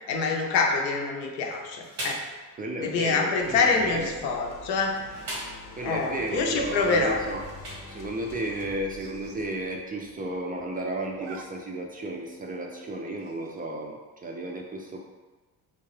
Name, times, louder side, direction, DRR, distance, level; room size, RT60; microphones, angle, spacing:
voice 1, 0.1-2.3 2.8-5.0 5.8-7.2, left 4 dB, 85° left, 2 dB, 0.6 m, -26 dB
sound 1, 1.5-2.4 3.4-4.2 4.9-5.7 6.6-8.0, right 1 dB, 90° right, 1.1 m, -39 dB
voice 2, 2.6-4.2 5.8-7.5 7.9-15.0, right 1 dB, 20° right, 0 dB, 0.3 m, -33 dB
sound 2, 3.4-11.9, left 3 dB, 40° left, 0.6 m, -46 dB
Zipper (clothing), 4.7-5.1 6.7-7.1 7.6-7.8 8.1-8.2 8.4-8.5 8.8-9.4 9.8-9.9 10.1-10.6 10.9-11.4 11.8-11.9 13.2-13.6, right 4 dB, 65° right, 0.6 m, -45 dB
3.5 x 2.7 x 3.1 m, 1.3 s
hypercardioid pair, 50°, 50 cm